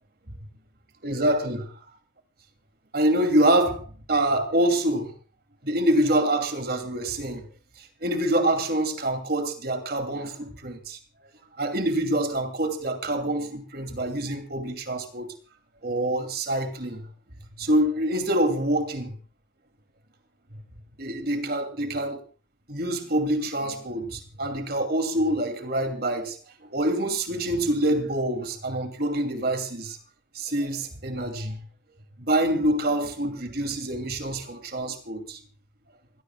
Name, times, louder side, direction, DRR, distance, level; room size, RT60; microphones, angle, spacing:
voice 1, 1.0-1.7 2.9-5.1 5.6-7.5 7.8-11.0 11.6-15.3 15.8-17.1 17.6-19.1 21.0-22.2 22.7-26.4 26.7-30.0 30.3-31.6 32.2-35.4, right 1 dB, 50° right, 2.8 m, -26 dB
27.5 x 17.0 x 2.3 m
head